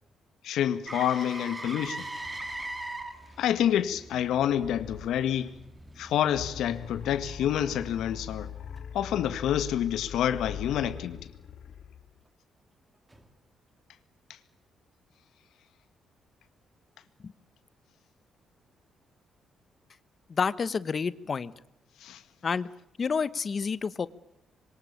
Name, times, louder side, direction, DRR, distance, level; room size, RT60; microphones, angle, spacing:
voice 1, 0.4-2.1 3.4-5.5 6.0-8.5 8.9-11.2 22.0-22.2, left 10 dB, 85° left, 1.8 m, -28 dB
Motor vehicle (road), 0.9-8.8 13.1-13.2, right 1 dB, 10° right, 2.6 m, -42 dB
sound 1, 4.6-5.7 6.3-12.2, left 8 dB, 60° left, 2.6 m, -42 dB
voice 2, 20.3-21.5 22.4-22.7 23.0-24.1, left 5 dB, 30° left, 1.0 m, -29 dB
26.5 x 23.5 x 8.7 m
cardioid pair, 170°, 0 cm